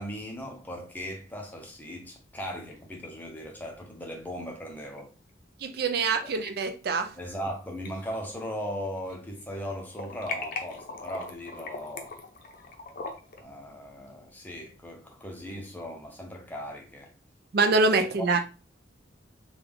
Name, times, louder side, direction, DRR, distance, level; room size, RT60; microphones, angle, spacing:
voice 1, 0.0-5.1 6.2-6.3 7.2-12.1 13.4-17.1 18.0-18.3, equal, 10° left, 0.7 m, -38 dB
sound 1, 2.4-3.1 3.4-3.5 5.0-5.1 6.1-6.5 7.0-7.5 7.9-9.2 9.5-13.4, left 3 dB, 50° left, 0.6 m, -40 dB
voice 2, 5.6-7.1 17.5-18.4, right 3 dB, 55° right, 0.4 m, -24 dB
3.5 x 2.3 x 3.4 m
head